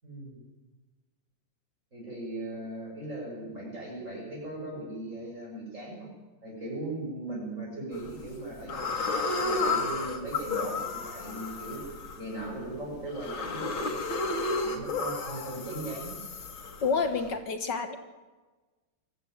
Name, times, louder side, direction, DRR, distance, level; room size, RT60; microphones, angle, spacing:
voice 1, 0.0-0.4 1.9-6.1 6.4-11.9 12.2-14.0 14.6-16.2, right 2 dB, 35° right, -2 dB, 7.5 m, -38 dB
sound 1, 7.9-8.3 8.7-17.3, left 3 dB, 85° left, 2.9 m, -32 dB
voice 2, 16.8-18.0, left 5 dB, 60° left, 8 dB, 1.9 m, -28 dB
23.5 x 14.5 x 9.3 m, 1.3 s
omnidirectional pair, 2.1 m